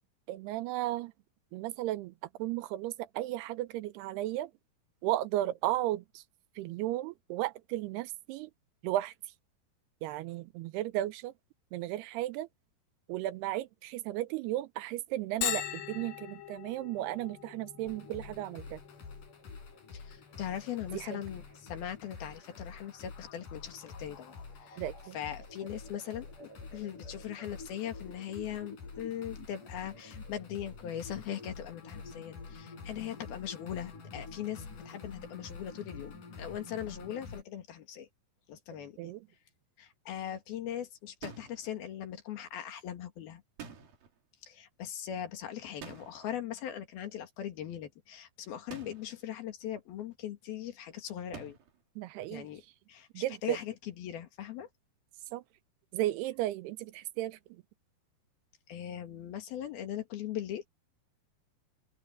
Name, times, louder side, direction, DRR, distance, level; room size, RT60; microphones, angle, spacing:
voice 1, 0.3-1.1 1.5-2.1 2.4-4.5 5.0-6.0 6.6-8.5 8.8-9.1 10.0-11.3 11.7-12.5 13.1-18.8 20.9-21.2 24.8-25.2 39.0-39.2 52.0-52.4 53.1-53.6 55.3-55.4 55.9-57.4, right 15 dB, 80° right, 2.7 m, -34 dB
Bell, 15.4-30.9, left 11 dB, 85° left, 3.5 m, -45 dB
sound 1, 17.9-37.4, left 4 dB, 50° left, 6.6 m, -47 dB
voice 2, 19.9-24.8 25.1-38.1 38.5-39.1 39.8-43.4 44.4-51.6 52.3-52.6 52.9-54.7 58.7-60.7, left 10 dB, 70° left, 3.7 m, -40 dB
sound 2, 41.2-41.7 43.6-44.2 45.8-46.4 48.7-49.2 51.3-51.8, right 6 dB, 60° right, 4.7 m, -47 dB
open air
omnidirectional pair, 4.7 m